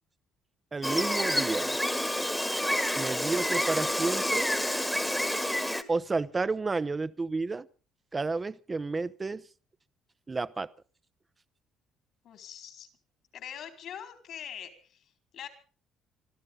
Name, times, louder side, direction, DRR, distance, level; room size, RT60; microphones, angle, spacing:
voice 1, 0.7-1.7 3.0-4.5 5.9-7.7 8.1-9.4 10.3-10.7, right 3 dB, 20° right, 15 dB, 0.8 m, -31 dB
Gull seagull, 0.8-5.8, left 1 dB, 5° left, 1.6 m, -28 dB
voice 2, 12.2-12.9 13.3-15.5, left 9 dB, 60° left, 6 dB, 4.2 m, -43 dB
25.5 x 14.5 x 3.8 m, 0.38 s
cardioid pair, 135°, 0 cm